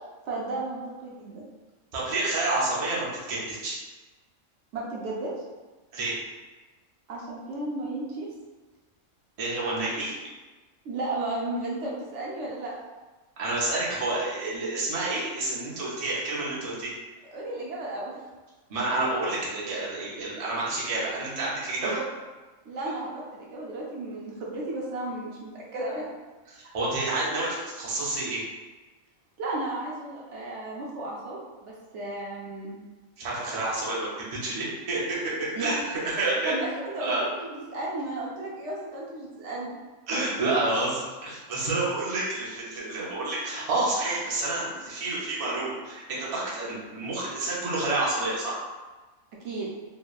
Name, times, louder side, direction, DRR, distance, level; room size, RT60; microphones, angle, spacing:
voice 1, 0.3-1.4 4.7-5.3 7.1-8.3 10.8-12.7 17.3-18.2 22.7-26.1 29.4-32.8 35.6-35.7 36.4-39.8 49.4-49.7, right 2 dB, 70° right, -4 dB, 0.8 m, -34 dB
voice 2, 1.9-3.8 5.9-6.1 9.4-10.1 13.4-16.9 18.7-22.0 26.5-28.4 33.2-36.5 37.0-37.2 40.1-48.6, right 2 dB, 45° right, -6 dB, 0.5 m, -29 dB
3.0 x 2.0 x 2.3 m, 1.2 s
omnidirectional pair, 1.4 m